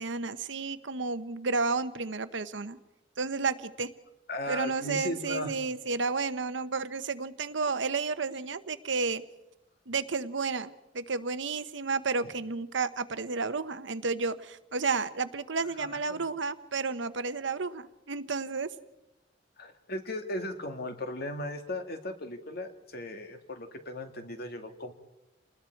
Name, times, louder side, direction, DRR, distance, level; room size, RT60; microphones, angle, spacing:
voice 1, 0.0-2.8 3.2-3.9 4.5-9.2 9.9-18.7, right 4 dB, 85° right, 12 dB, 1.0 m, -32 dB
voice 2, 4.3-5.5 12.2-12.3 15.8-16.2 19.6-24.9, left 1 dB, 60° left, 6 dB, 2.1 m, -37 dB
29.0 x 20.0 x 4.6 m, 0.93 s
head